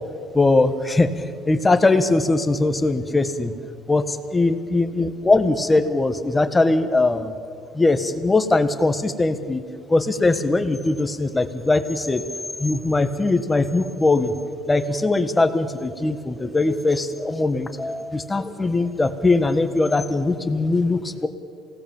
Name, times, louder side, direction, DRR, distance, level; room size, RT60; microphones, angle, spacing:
voice 1, 0.3-3.5 3.9-7.3 7.7-9.6 9.9-12.2 12.6-14.3 14.7-21.3, left 2 dB, 15° left, 9 dB, 1.6 m, -21 dB
27.5 x 18.5 x 7.3 m, 2.4 s
cardioid pair, 125°, 0 cm